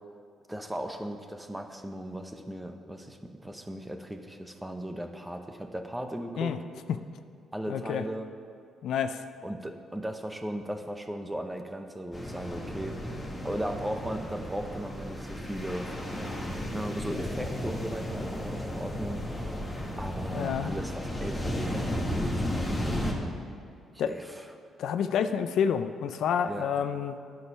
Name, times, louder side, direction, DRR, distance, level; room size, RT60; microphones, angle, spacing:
voice 1, 0.5-6.6 7.5-8.3 9.4-13.0 13.4-15.9 16.7-19.2 20.0-23.4 24.1-24.4 26.5-26.7, right 1 dB, 10° right, 6 dB, 0.8 m, -37 dB
voice 2, 7.7-8.0 8.8-9.2 20.3-20.7 24.0-24.1 24.8-27.2, left 7 dB, 75° left, 10 dB, 0.4 m, -28 dB
sound 1, 12.1-23.1, left 1 dB, 10° left, 1.5 m, -34 dB
10.5 x 6.4 x 5.5 m, 2.5 s
cardioid pair, 90°, 0 cm